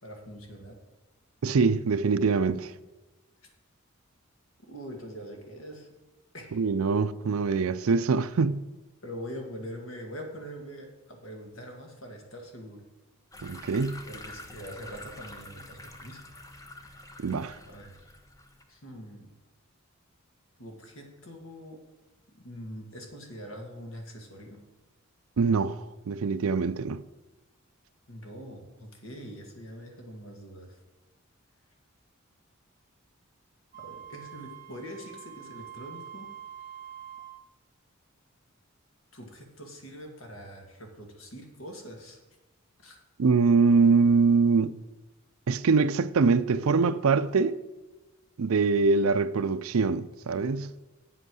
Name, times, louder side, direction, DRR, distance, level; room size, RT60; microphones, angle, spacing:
voice 1, 0.0-0.8 4.7-5.9 6.3-6.7 9.0-12.8 14.0-16.2 17.7-18.0 18.7-19.3 20.6-21.8 22.3-24.6 28.1-30.8 33.8-36.3 39.1-42.2 42.8-43.0, equal, 70° left, 2.0 m, -43 dB
voice 2, 1.4-2.7 6.5-8.6 13.4-14.0 17.2-17.6 25.4-27.0 43.2-44.7 45.5-47.6 48.4-50.7, right 4 dB, 80° right, 0.5 m, -24 dB
sound 1, 13.3-18.6, left 2 dB, 15° left, 0.8 m, -47 dB
Wind instrument woodwind instrument, 33.7-37.5, right 10 dB, 40° right, 0.7 m, -45 dB
8.0 x 7.8 x 6.3 m
head